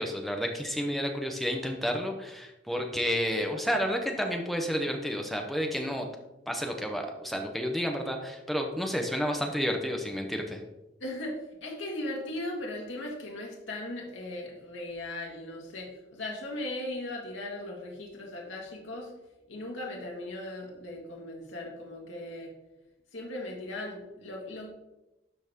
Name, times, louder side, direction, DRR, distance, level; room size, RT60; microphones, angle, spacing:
voice 1, 0.0-6.0 6.5-10.6, equal, ahead, 2 dB, 0.7 m, -31 dB
voice 2, 11.0-19.1 19.5-22.5 23.1-24.7, left 1 dB, 75° left, -1 dB, 1.7 m, -38 dB
12.0 x 4.1 x 3.5 m, 0.96 s
head